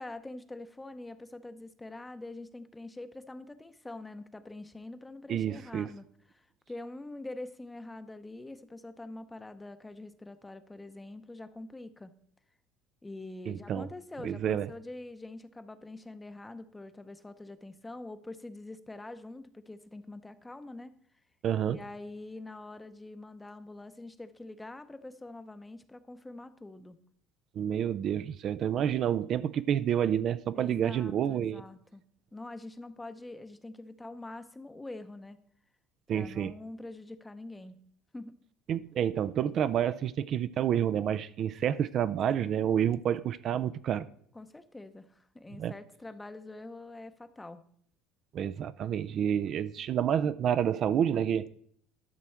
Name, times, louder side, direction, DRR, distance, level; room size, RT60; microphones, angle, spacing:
voice 1, 0.0-12.1 13.0-20.9 21.6-27.0 30.6-32.0 32.3-35.4 36.1-37.8 38.1-38.4 44.3-47.6, left 2 dB, 10° left, 0.7 m, -45 dB
voice 2, 5.3-5.9 13.5-13.9 14.2-14.7 21.4-21.8 27.6-31.6 36.1-36.5 38.7-44.1 45.6-45.7 48.3-51.5, right 9 dB, 50° right, 0.4 m, -29 dB
12.0 x 6.1 x 4.4 m
supercardioid pair, 105°, 0 cm